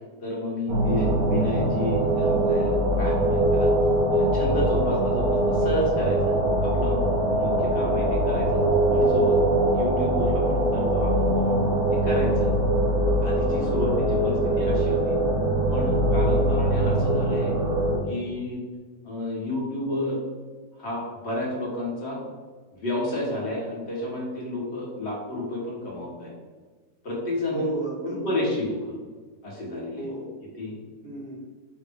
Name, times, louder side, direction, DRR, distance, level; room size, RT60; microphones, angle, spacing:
voice 1, 0.2-3.7 4.1-6.3 6.6-7.0 7.3-8.6 8.9-9.4 9.7-11.6 11.9-12.5 13.2-15.2 15.7-17.5 18.1-18.6 19.0-20.2 20.8-22.2 22.7-26.3 27.0-27.7 28.0-28.9 29.4-30.0 30.6-30.8, left 1 dB, 45° left, -4 dB, 1.3 m, -31 dB
sound 1, 0.7-18.0, right 1 dB, 80° right, 1.9 m, -22 dB
voice 2, 7.6-8.0 13.7-14.1 27.5-28.5 29.9-30.5 31.0-31.5, right 2 dB, 45° right, -5 dB, 1.0 m, -34 dB
5.0 x 2.4 x 3.5 m, 1.4 s
omnidirectional pair, 1.8 m